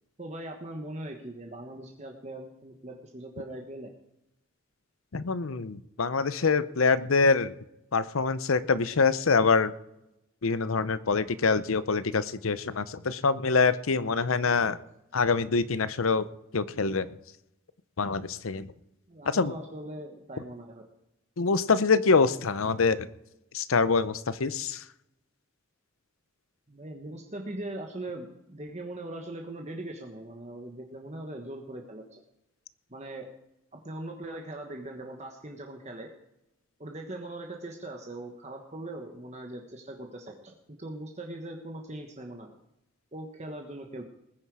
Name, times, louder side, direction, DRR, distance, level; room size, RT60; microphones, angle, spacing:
voice 1, 0.2-3.9 19.1-20.8 26.7-32.2 32.9-33.3 33.7-36.1 36.8-42.5 43.1-44.0, right 1 dB, 35° right, 2 dB, 1.3 m, -40 dB
voice 2, 5.1-7.5 7.9-9.7 10.4-14.8 15.1-16.3 16.5-17.1 18.0-18.7 19.3-19.5 21.4-23.0 23.5-24.8, left 4 dB, 85° left, 15 dB, 0.7 m, -25 dB
20.0 x 9.9 x 4.8 m, 0.87 s
head